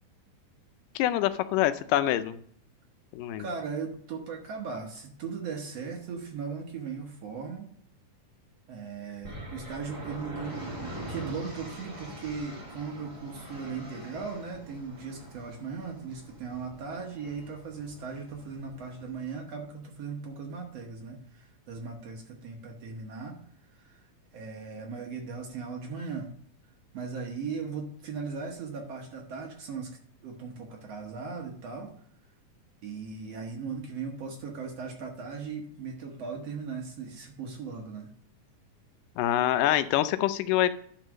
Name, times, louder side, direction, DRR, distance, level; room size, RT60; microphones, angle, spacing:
voice 1, 1.0-2.4 3.1-3.5 39.2-40.7, left 13 dB, 85° left, 12 dB, 2.1 m, -25 dB
voice 2, 3.4-7.7 8.7-23.4 23.7-24.0 24.3-26.3 26.9-29.9 30.2-31.9 32.8-38.1, right 5 dB, 60° right, 1 dB, 1.8 m, -38 dB
sound 1, 9.2-19.1, right 1 dB, 15° right, 1.8 m, -44 dB
11.0 x 4.0 x 6.4 m, 0.63 s
omnidirectional pair, 3.8 m